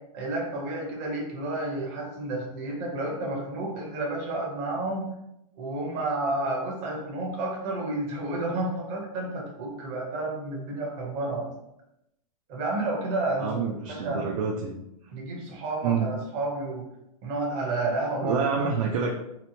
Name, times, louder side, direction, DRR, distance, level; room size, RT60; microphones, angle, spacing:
voice 1, 0.0-5.0 5.6-11.5 12.5-14.2 15.1-16.8 17.2-18.4, right 2 dB, 30° right, -1 dB, 0.8 m, -31 dB
voice 2, 13.4-14.8 15.8-16.1 18.2-19.1, right 6 dB, 55° right, 1 dB, 0.4 m, -27 dB
2.9 x 2.1 x 2.7 m, 0.85 s
hypercardioid pair, 150°, 20 cm